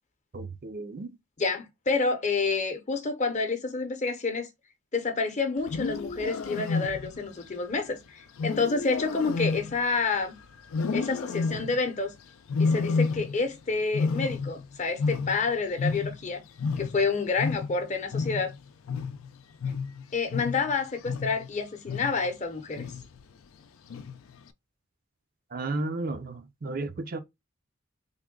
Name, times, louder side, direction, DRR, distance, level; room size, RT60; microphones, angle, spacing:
voice 1, 0.3-1.1 25.5-27.2, right 2 dB, 45° right, 0.5 m, -33 dB
voice 2, 1.4-4.5 4.9-10.3 10.9-12.1 12.6-16.4 16.8-18.5 20.1-22.9, left 4 dB, 35° left, 0.7 m, -29 dB
Wild animals, 5.6-7.3 8.4-10.3 10.7-11.9 12.5-13.6 13.8-16.3 16.6-21.5 21.9-22.3 22.8-23.2 23.9-24.4, left 4 dB, 80° left, 0.4 m, -30 dB
3.5 x 2.2 x 3.6 m
head